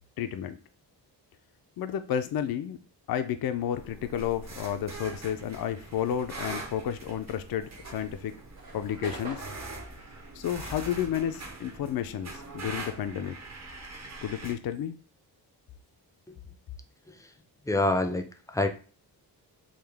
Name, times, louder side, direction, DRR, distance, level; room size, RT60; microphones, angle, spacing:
voice 1, 0.2-0.6 1.8-2.8 3.1-8.3 8.7-9.4 10.3-13.4 14.2-15.0, left 9 dB, 60° left, 9 dB, 0.5 m, -31 dB
sound 1, 3.7-14.5, right 2 dB, 40° right, 0.8 m, -43 dB
sound 2, 7.6-12.3 12.6-14.6, right 2 dB, 55° right, 1.4 m, -46 dB
voice 2, 17.7-18.7, left 2 dB, 10° left, 6 dB, 0.5 m, -27 dB
3.8 x 2.3 x 3.4 m, 0.37 s
cardioid pair, 75°, 42 cm